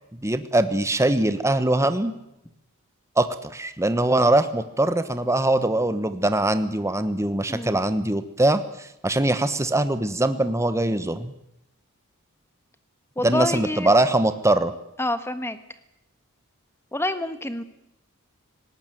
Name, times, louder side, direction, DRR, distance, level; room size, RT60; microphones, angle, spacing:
voice 1, 0.2-2.1 3.2-11.3 13.2-14.7, right 1 dB, 15° right, 11 dB, 1.1 m, -22 dB
voice 2, 13.2-13.9 15.0-15.6 16.9-17.6, left 1 dB, 10° left, 11 dB, 1.4 m, -27 dB
19.0 x 18.0 x 9.1 m, 0.86 s
head